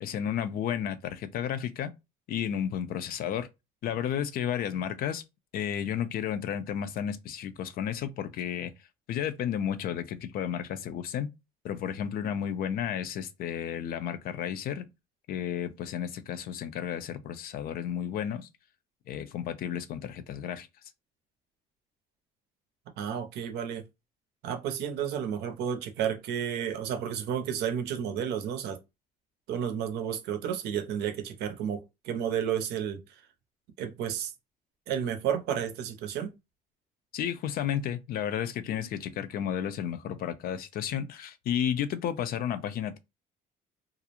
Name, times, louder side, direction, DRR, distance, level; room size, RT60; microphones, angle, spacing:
voice 1, 0.0-1.9 2.3-3.5 3.8-5.2 5.5-8.7 9.1-11.3 11.6-14.9 15.3-18.5 19.1-20.7 37.1-43.0, left 9 dB, 60° left, 0.4 m, -32 dB
voice 2, 23.0-23.8 24.4-28.8 29.5-33.2 33.8-34.3 34.9-36.3, right 8 dB, 75° right, 0.6 m, -32 dB
2.4 x 2.0 x 2.8 m
cardioid pair, 110°, 17 cm